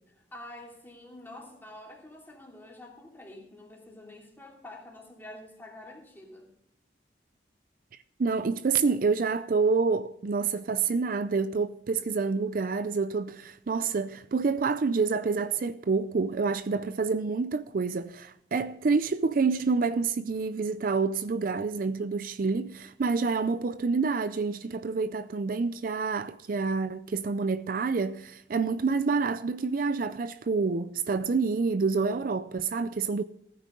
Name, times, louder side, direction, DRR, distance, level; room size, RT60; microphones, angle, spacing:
voice 1, 0.1-6.5, left 1 dB, 10° left, 2.9 m, -47 dB
voice 2, 8.2-33.2, right 4 dB, 50° right, 0.4 m, -28 dB
15.5 x 9.4 x 3.8 m
head